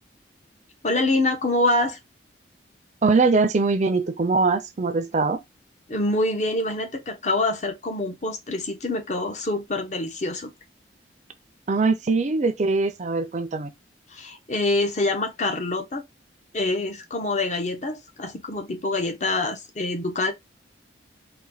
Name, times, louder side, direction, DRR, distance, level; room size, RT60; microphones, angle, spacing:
voice 1, 0.8-2.0 5.9-10.5 14.1-16.0 16.5-20.3, left 2 dB, 40° left, 0.8 m, -25 dB
voice 2, 3.0-5.4 11.7-13.7, right 3 dB, 40° right, 0.5 m, -22 dB
4.2 x 2.2 x 3.9 m
head